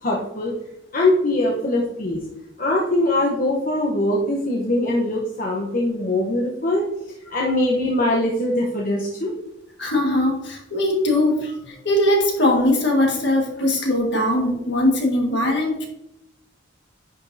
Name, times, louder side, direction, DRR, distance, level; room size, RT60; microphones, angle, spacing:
voice 1, 0.0-0.5 0.9-2.2 2.6-6.9 7.3-9.3, left 1 dB, 45° left, -2 dB, 1.0 m, -22 dB
voice 2, 9.8-15.9, left 1 dB, 60° left, 0 dB, 1.8 m, -20 dB
10.5 x 5.3 x 2.8 m, 0.84 s
head